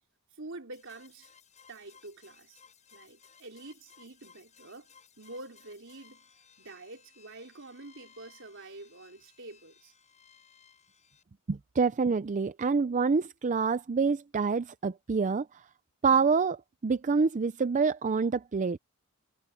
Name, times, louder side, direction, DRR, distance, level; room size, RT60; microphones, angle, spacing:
voice 1, 0.4-1.3 1.7-2.6 2.9-6.3 6.6-9.9, right 2 dB, 60° right, 3.9 m, -47 dB
sound 1, 0.7-11.2, left 7 dB, 35° left, 7.2 m, -60 dB
voice 2, 11.5-15.5 16.0-18.8, right 5 dB, 35° right, 0.4 m, -27 dB
head